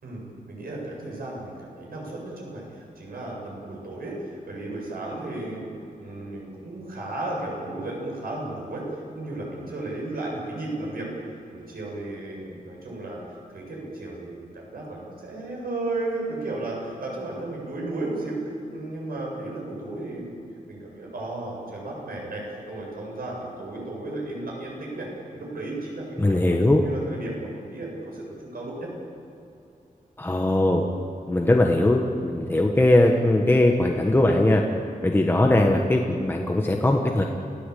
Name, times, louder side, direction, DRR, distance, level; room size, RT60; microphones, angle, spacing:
voice 1, 0.0-5.7 6.0-11.1 11.5-13.2 13.5-20.4 20.7-25.1 25.3-28.9, right 2 dB, 85° right, -2 dB, 8.0 m, -34 dB
voice 2, 26.2-26.8 30.2-30.8 31.3-34.6 35.0-37.2, left 1 dB, 15° left, 1 dB, 1.4 m, -20 dB
29.5 x 17.0 x 8.5 m, 2.7 s
wide cardioid pair, 180°, 15 cm